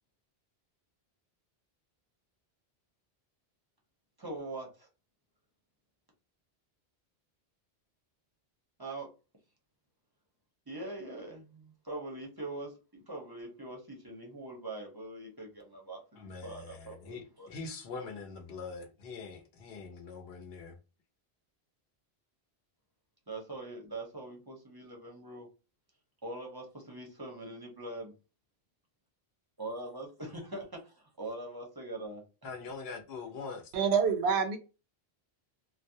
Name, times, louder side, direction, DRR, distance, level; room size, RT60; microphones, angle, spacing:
voice 1, 4.2-4.9 8.8-9.1 10.7-17.5 23.3-25.5 26.2-28.1 29.6-32.2, right 2 dB, 30° right, 0.5 m, -42 dB
voice 2, 16.2-20.8 32.4-33.7, left 4 dB, 75° left, 0.9 m, -43 dB
voice 3, 33.7-34.6, right 6 dB, 85° right, 0.8 m, -26 dB
2.3 x 2.0 x 2.6 m
omnidirectional pair, 1.1 m